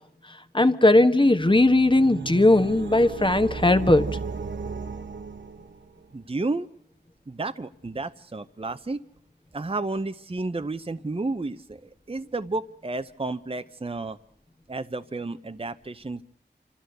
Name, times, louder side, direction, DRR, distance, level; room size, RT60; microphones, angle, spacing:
voice 1, 0.5-4.1, left 2 dB, 25° left, 1.3 m, -18 dB
sound 1, 1.4-6.0, right 4 dB, 80° right, 0.9 m, -35 dB
voice 2, 6.1-6.7 7.3-9.0 9.5-14.2 14.7-16.2, right 2 dB, 30° right, 0.7 m, -31 dB
27.5 x 13.0 x 7.9 m
wide cardioid pair, 45°, 19 cm